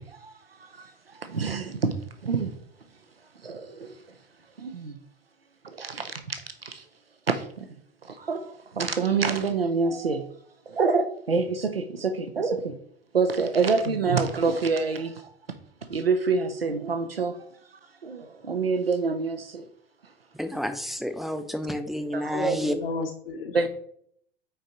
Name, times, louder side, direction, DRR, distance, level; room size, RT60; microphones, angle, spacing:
voice 1, 1.3-1.9 2.2-2.5 3.4-3.6 4.6-4.9 5.8-6.0 8.3-8.4 8.8-10.2 10.7-12.6 13.1-15.1 15.9-17.3 18.0-19.6 22.1-22.6 23.5-23.7, right 4 dB, 90° right, 8 dB, 0.7 m, -25 dB
voice 2, 20.4-22.7, equal, ahead, 9 dB, 0.6 m, -30 dB
voice 3, 22.3-23.7, left 4 dB, 70° left, 2 dB, 1.1 m, -33 dB
5.6 x 4.6 x 4.9 m, 0.65 s
figure-of-eight pair, 85°, 29 cm